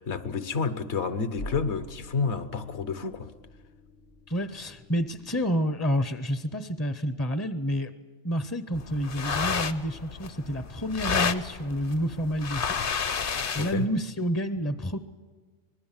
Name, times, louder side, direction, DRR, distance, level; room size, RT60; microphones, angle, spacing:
voice 1, 0.0-3.3 13.5-13.9, left 5 dB, 70° left, 1.3 m, -30 dB
sound 1, 1.4-6.0, left 1 dB, 85° left, 8.4 m, -46 dB
voice 2, 4.3-7.9 8.2-12.7 13.5-15.0, equal, 20° left, 0.5 m, -29 dB
sound 2, 8.7-13.9, left 6 dB, 50° left, 1.0 m, -31 dB
25.5 x 20.0 x 7.3 m
omnidirectional pair, 1.2 m